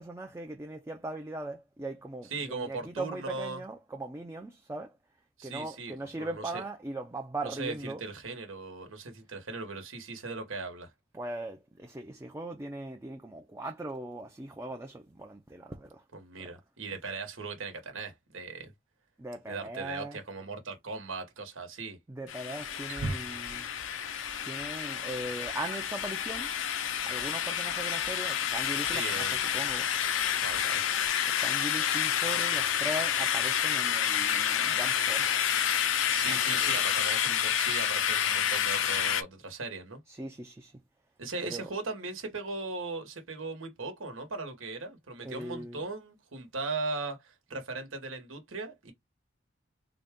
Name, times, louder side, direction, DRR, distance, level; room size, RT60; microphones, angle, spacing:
voice 1, 0.0-4.9 5.4-8.0 11.1-16.0 19.2-20.2 22.1-23.7 24.5-26.5 27.0-29.9 31.3-35.4 36.3-36.7 40.1-40.7 41.4-41.7 45.2-45.8, right 2 dB, 15° right, 0.4 m, -39 dB
voice 2, 2.3-3.6 5.4-6.6 7.4-10.9 16.1-18.7 19.5-22.0 28.8-29.5 30.4-30.9 36.1-40.0 41.2-48.9, right 3 dB, 85° right, 1.2 m, -38 dB
sound 1, 22.3-39.2, left 9 dB, 70° left, 0.5 m, -29 dB
Wild animals, 22.6-31.1, right 2 dB, 65° right, 0.8 m, -46 dB
3.9 x 2.2 x 3.6 m
head